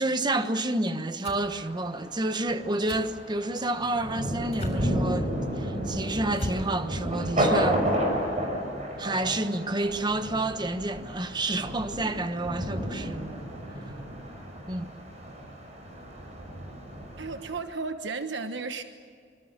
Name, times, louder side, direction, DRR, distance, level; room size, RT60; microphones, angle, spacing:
voice 1, 0.0-5.3 5.6-7.8 9.0-13.4 14.6-14.9, right 2 dB, 25° right, 1.2 m, -29 dB
sound 1, 1.2-1.4 2.9-3.1 4.5-4.9 6.3-6.7, equal, 35° left, 7.0 m, -35 dB
Thunder, 1.4-17.6, equal, 40° right, 5.8 m, -32 dB
voice 2, 17.2-18.8, right 4 dB, 80° right, 1.2 m, -34 dB
25.5 x 25.0 x 7.4 m
head